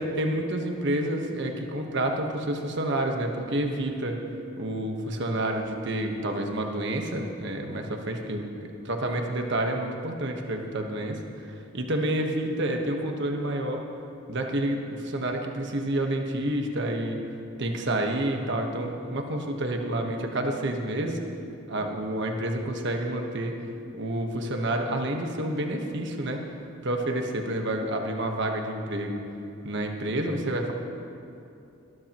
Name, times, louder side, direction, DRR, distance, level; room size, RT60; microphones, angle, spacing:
voice 1, 0.0-4.2 4.6-13.8 14.3-17.2 17.6-21.2 21.7-23.5 23.9-26.4 26.8-29.2 29.6-30.7, right 1 dB, 55° right, 3 dB, 1.3 m, -29 dB
22.0 x 13.0 x 3.0 m, 2.7 s
head